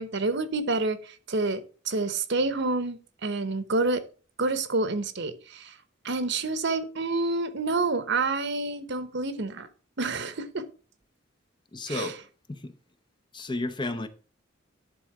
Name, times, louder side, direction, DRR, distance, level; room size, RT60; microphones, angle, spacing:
voice 1, 0.0-1.6 1.9-4.0 4.4-5.7 6.0-9.7 10.0-10.7 11.9-12.1, right 3 dB, 60° right, 1.0 m, -28 dB
voice 2, 11.7-12.2 12.5-12.7 13.3-14.1, left 2 dB, 25° left, 0.7 m, -32 dB
11.0 x 3.8 x 6.0 m
head